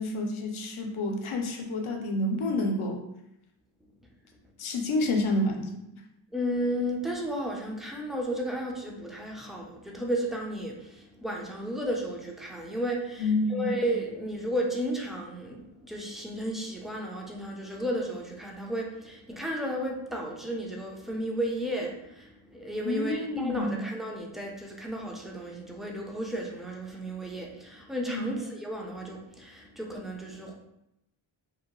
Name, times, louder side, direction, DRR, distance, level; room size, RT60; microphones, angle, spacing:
voice 1, 0.0-3.0 4.6-5.8 13.2-13.7 22.8-23.8 28.1-28.3, left 2 dB, 80° left, 3 dB, 0.5 m, -29 dB
voice 2, 6.3-13.2 13.5-30.5, equal, ahead, -1 dB, 0.5 m, -33 dB
2.7 x 2.1 x 2.9 m, 0.85 s
wide cardioid pair, 50°, 49 cm